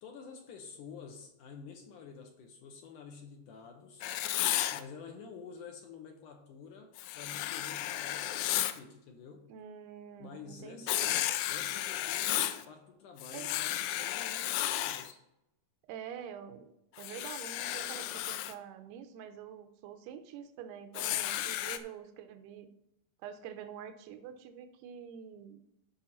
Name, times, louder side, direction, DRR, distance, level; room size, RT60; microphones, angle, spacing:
voice 1, 0.0-4.1 4.7-9.5 10.2-10.9 11.5-15.2, left 6 dB, 70° left, 3 dB, 2.1 m, -49 dB
Writing, 4.0-4.8 7.0-8.8 10.9-12.6 13.2-15.1 17.0-18.5 20.9-21.8, left 13 dB, 85° left, 2.6 m, -33 dB
voice 2, 9.5-11.1 13.3-13.5 15.9-22.7 23.2-25.6, right 8 dB, 85° right, 9 dB, 2.7 m, -46 dB
13.5 x 5.7 x 4.3 m, 0.85 s
omnidirectional pair, 4.5 m